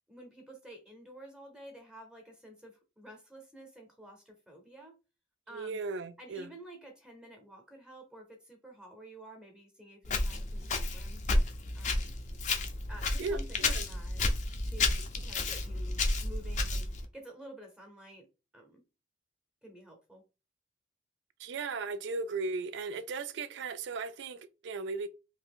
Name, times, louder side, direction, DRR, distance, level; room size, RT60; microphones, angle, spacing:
voice 1, 0.1-5.0 5.5-5.8 6.2-11.2 11.7-12.2 12.9-14.2 14.6-18.3 18.5-18.8 19.6-20.2, right 1 dB, 5° right, 0.7 m, -51 dB
voice 2, 5.5-6.5 13.2-13.8 21.4-25.1, right 4 dB, 65° right, 0.4 m, -36 dB
Walk footsteps, 10.0-17.0, left 2 dB, 40° left, 0.5 m, -31 dB
2.8 x 2.5 x 3.6 m
head